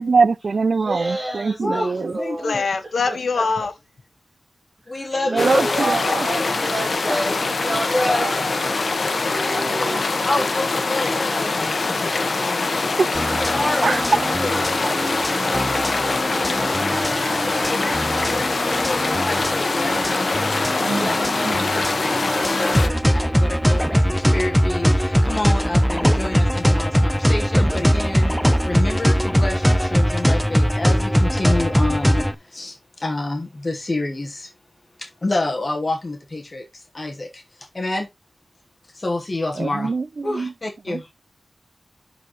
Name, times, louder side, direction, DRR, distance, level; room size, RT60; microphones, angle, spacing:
voice 1, 0.0-2.1 5.3-6.3 9.3-10.0 13.0-13.4 13.8-14.0 16.9-17.0 20.8-21.2 21.4-21.6 39.6-40.0 40.3-40.5 40.9-41.1, right 4 dB, 60° right, 0.4 m, -23 dB
voice 2, 0.8-2.6 5.3-8.8, right 1 dB, 40° right, 2.3 m, -29 dB
voice 3, 1.6-2.6 4.9-6.2 7.7-8.4 9.4-13.0 13.4-16.9 17.4-34.5 35.0-38.1 38.9-39.9 40.2-41.1, left 2 dB, 35° left, 1.2 m, -29 dB
voice 4, 2.4-3.7, left 4 dB, 80° left, 1.1 m, -23 dB
sound 1, 5.4-22.9, left 3 dB, 60° left, 1.0 m, -23 dB
sound 2, 13.1-32.3, equal, ahead, 0.7 m, -21 dB
11.5 x 4.1 x 3.0 m
wide cardioid pair, 100°, 0 cm